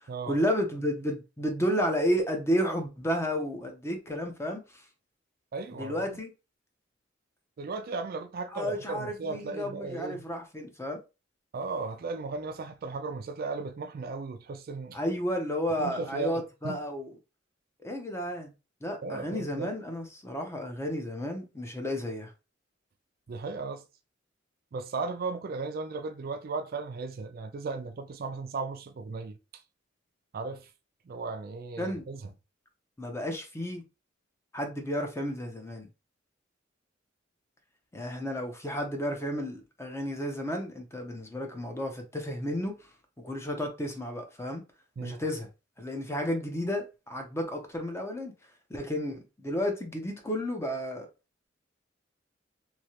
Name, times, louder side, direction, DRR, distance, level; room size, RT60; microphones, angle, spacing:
voice 1, 0.0-4.6 5.8-6.3 8.5-11.0 14.9-17.1 17.8-18.5 18.8-22.3 31.8-32.0 33.0-33.8 34.5-35.9 37.9-42.8 43.2-44.6 45.0-45.5 45.8-48.3 48.7-51.1, equal, 15° left, 0.6 m, -32 dB
voice 2, 5.5-6.2 7.6-10.3 11.5-15.0 15.8-16.8 19.0-19.7 23.3-23.8 24.7-29.4 30.3-30.7 31.1-32.3 45.0-45.2, right 4 dB, 50° right, 0.4 m, -36 dB
3.1 x 2.8 x 2.8 m
head